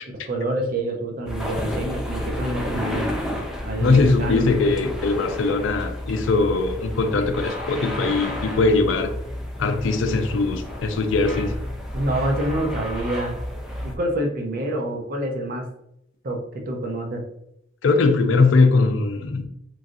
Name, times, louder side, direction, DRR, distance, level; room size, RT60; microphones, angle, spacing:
voice 1, 0.3-3.2 3.6-4.5 11.9-13.4 13.8-15.7 16.2-17.3, right 1 dB, 50° right, 2 dB, 0.6 m, -27 dB
sound 1, 1.3-14.0, equal, 5° right, 0.3 m, -31 dB
voice 2, 3.8-9.1 9.6-11.5 17.8-19.5, left 3 dB, 80° left, 7 dB, 0.4 m, -20 dB
3.1 x 2.4 x 2.6 m, 0.77 s
head